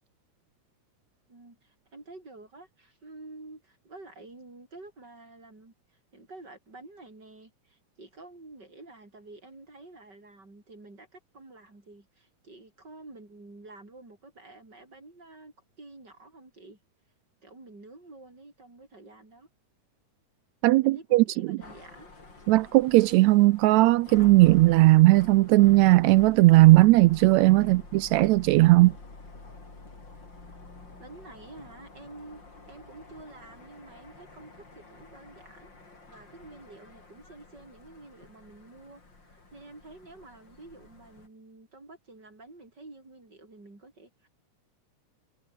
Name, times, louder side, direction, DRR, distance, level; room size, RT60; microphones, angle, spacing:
voice 1, 1.3-16.8 17.4-19.5 20.8-22.1 27.6-27.8 31.0-32.4 32.7-44.3, right 2 dB, 35° right, 7.1 m, -49 dB
voice 2, 20.6-21.6 22.5-28.9, right 19 dB, 80° right, 1.8 m, -18 dB
sound 1, 21.6-41.3, left 3 dB, 35° left, 5.7 m, -49 dB
omnidirectional pair, 3.4 m